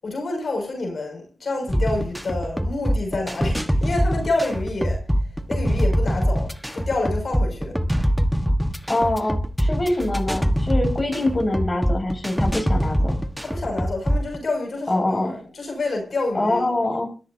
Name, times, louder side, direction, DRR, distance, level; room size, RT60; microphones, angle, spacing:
voice 1, 0.0-5.0 5.5-7.8 13.4-16.6, left 2 dB, 50° left, 6.3 m, -28 dB
sound 1, 1.7-14.4, equal, ahead, 1.3 m, -23 dB
voice 2, 8.9-13.1 14.9-15.3 16.3-17.0, left 1 dB, 20° left, 7.5 m, -24 dB
25.0 x 14.5 x 2.8 m
cardioid pair, 80°, 0 cm